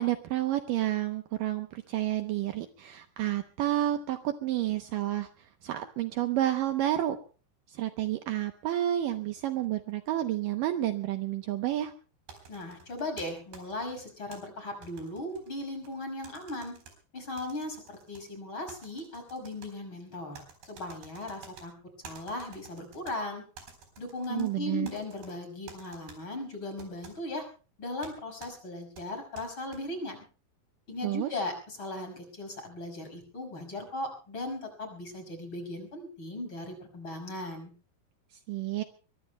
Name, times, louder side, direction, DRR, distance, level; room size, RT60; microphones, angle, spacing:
voice 1, 0.0-5.3 5.6-7.2 7.7-11.9 24.3-24.9 31.0-31.3 38.5-38.8, right 13 dB, 90° right, 7 dB, 1.9 m, -30 dB
sound 1, 12.3-14.4 14.8-15.9 16.2-16.9 17.4-18.2 18.7-19.7 20.3-21.7 22.0-23.2 23.6-24.5 24.9-25.3 25.7-26.2 26.8-27.2 28.0-28.1 28.4-28.5 29.0-29.8, right 5 dB, 65° right, 6.0 m, -50 dB
voice 2, 12.5-16.8 17.1-21.7 22.0-23.4 24.0-27.4 27.8-30.2 30.9-37.7, left 2 dB, 30° left, 5 dB, 6.4 m, -38 dB
23.0 x 23.0 x 2.2 m, 0.37 s
omnidirectional pair, 5.1 m